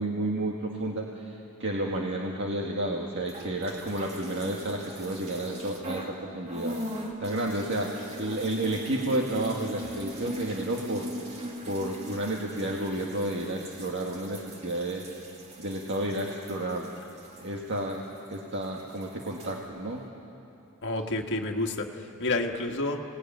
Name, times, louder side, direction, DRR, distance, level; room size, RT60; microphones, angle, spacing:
voice 1, 0.0-6.8 7.2-15.0 15.6-16.9 17.4-20.0, right 1 dB, 55° right, -1 dB, 1.9 m, -31 dB
sound 1, 3.2-6.2 6.5-18.4 18.6-19.6, equal, 30° right, 2.6 m, -40 dB
voice 2, 20.8-23.0, left 2 dB, 55° left, 3 dB, 1.8 m, -29 dB
28.5 x 19.0 x 9.3 m, 2.9 s
head